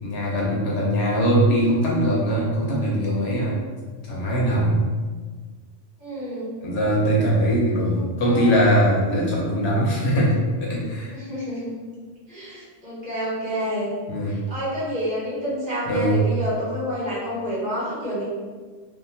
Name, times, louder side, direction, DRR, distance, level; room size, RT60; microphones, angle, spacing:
voice 1, 0.0-3.6 4.0-4.9 6.6-11.2 14.1-14.4 15.9-16.2, equal, 65° left, -4 dB, 0.8 m, -21 dB
voice 2, 6.0-6.5 7.9-8.6 11.1-11.7 12.3-13.9 14.3-18.2, equal, 45° right, -8 dB, 1.1 m, -29 dB
2.6 x 2.2 x 2.7 m, 1.4 s
omnidirectional pair, 1.3 m